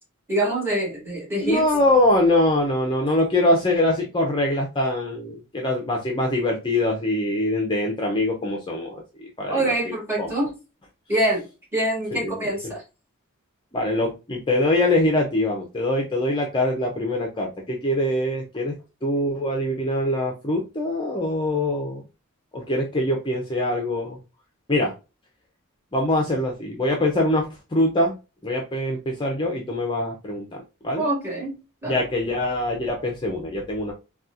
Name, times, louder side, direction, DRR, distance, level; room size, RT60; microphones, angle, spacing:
voice 1, 0.3-1.7 9.5-10.5 11.1-11.5 11.7-12.8 30.9-31.6 31.8-32.0, right 1 dB, 10° right, 1.7 m, -25 dB
voice 2, 1.4-10.3 12.1-12.5 13.7-18.8 19.0-22.0 22.5-24.2 24.7-24.9 25.9-28.1 28.4-31.1 31.9-33.9, left 1 dB, 20° left, 0.6 m, -23 dB
4.1 x 2.3 x 2.4 m
head